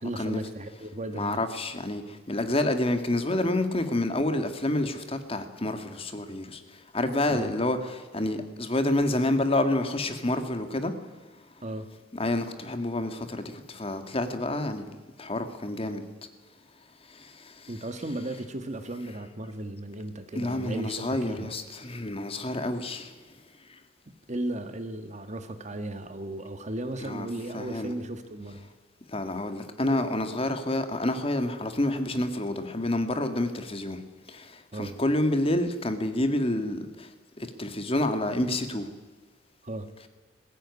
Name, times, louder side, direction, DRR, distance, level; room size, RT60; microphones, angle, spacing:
voice 1, 0.0-1.4 7.3-7.5 11.6-11.9 17.7-21.6 24.3-28.7 34.7-35.0 39.6-39.9, right 1 dB, 35° right, 9 dB, 1.5 m, -35 dB
voice 2, 1.1-10.9 12.1-16.0 17.1-17.7 20.4-23.1 27.0-27.3 27.5-27.9 29.1-34.0 34.3-37.1 37.4-38.9, left 1 dB, 30° left, 8 dB, 1.8 m, -28 dB
21.0 x 16.0 x 9.7 m, 1.3 s
head